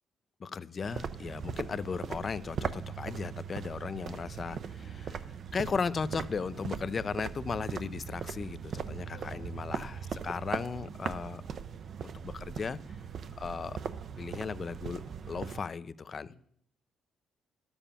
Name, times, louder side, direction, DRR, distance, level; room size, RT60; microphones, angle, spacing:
voice 1, 0.4-5.2 5.5-11.4 12.0-12.8 13.4-13.8 14.2-15.0 15.3-16.3, left 5 dB, 40° left, 16 dB, 0.5 m, -36 dB
sound 1, 0.8-15.6, right 7 dB, 55° right, 0.6 m, -39 dB
voice 2, 6.7-7.2 9.0-9.6 16.3-16.4, left 4 dB, 70° left, 6 dB, 1.9 m, -54 dB
12.0 x 7.1 x 5.6 m, 0.67 s
cardioid pair, 90°, 0 cm